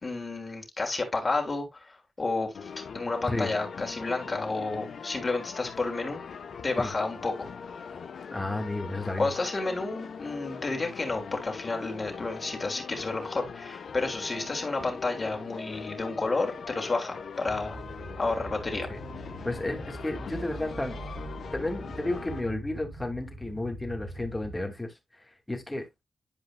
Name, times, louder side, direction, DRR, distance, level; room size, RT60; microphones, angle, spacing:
voice 1, 0.0-6.2 6.6-7.5 9.2-17.8 18.2-18.9, left 3 dB, 35° left, 3.1 m, -31 dB
sound 1, 2.5-22.4, left 6 dB, 70° left, 1.1 m, -41 dB
voice 2, 8.3-9.3 18.9-19.0 19.4-21.0 21.5-24.9 25.2-25.9, left 2 dB, 15° left, 2.5 m, -32 dB
sound 2, 17.4-24.6, right 1 dB, 90° right, 4.7 m, -42 dB
11.0 x 5.1 x 2.3 m
cardioid pair, 70°, 0 cm